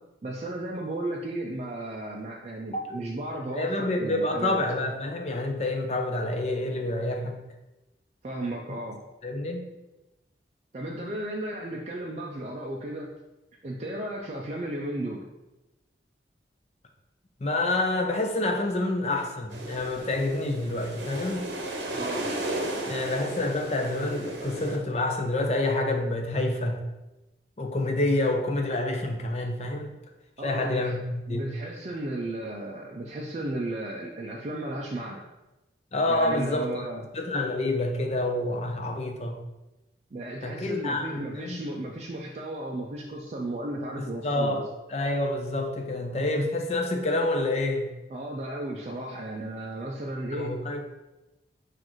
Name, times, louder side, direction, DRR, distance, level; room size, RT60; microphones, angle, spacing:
voice 1, 0.2-4.6 8.2-9.0 10.7-13.1 13.6-15.3 21.9-22.3 30.4-31.0 31.3-35.3 36.1-37.0 40.1-44.6 48.1-50.6, right 1 dB, 40° right, -2 dB, 0.4 m, -34 dB
voice 2, 2.7-3.0 3.5-7.4 9.2-9.6 17.4-21.5 22.9-26.8 27.6-29.9 30.4-31.5 35.9-36.9 37.1-39.4 40.4-41.6 44.0-44.6 44.9-47.9 50.3-50.8, left 2 dB, 35° left, 2 dB, 0.5 m, -28 dB
sound 1, 19.5-24.8, right 1 dB, 80° right, 0.7 m, -34 dB
6.1 x 2.5 x 3.0 m, 1.0 s
head